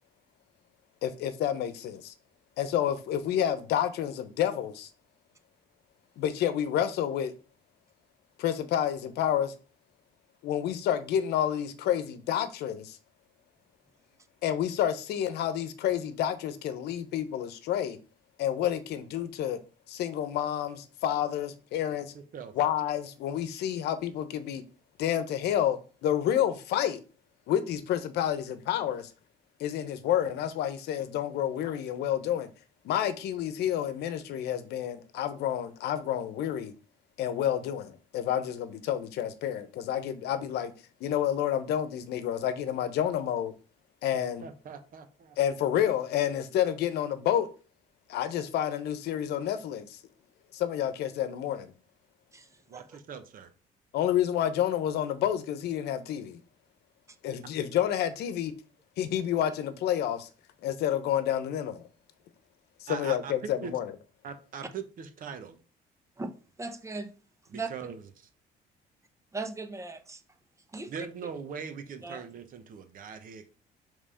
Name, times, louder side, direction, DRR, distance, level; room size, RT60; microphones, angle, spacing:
voice 1, 1.0-2.1 2.6-4.9 6.2-7.3 8.4-9.5 10.4-13.0 14.4-18.0 18.4-19.6 19.9-22.1 22.5-24.6 25.0-27.0 27.5-29.1 29.6-32.5 32.8-36.7 37.2-40.7 41.0-43.5 44.0-44.4 45.4-47.5 48.1-50.0 50.5-51.7 53.9-56.4 57.2-58.5 59.0-60.3 60.6-61.8 62.8-63.9, left 10 dB, 75° left, 0.9 m, -29 dB
voice 2, 21.9-22.5 44.1-45.4 52.7-53.5 62.9-63.7 64.2-65.6 67.5-68.3 70.9-73.5, right 6 dB, 55° right, 1.1 m, -41 dB
voice 3, 66.6-67.1 67.5-67.7 69.3-70.2 70.7-71.1 72.0-72.2, right 3 dB, 15° right, 0.9 m, -37 dB
5.5 x 3.6 x 4.9 m
cardioid pair, 110°, 17 cm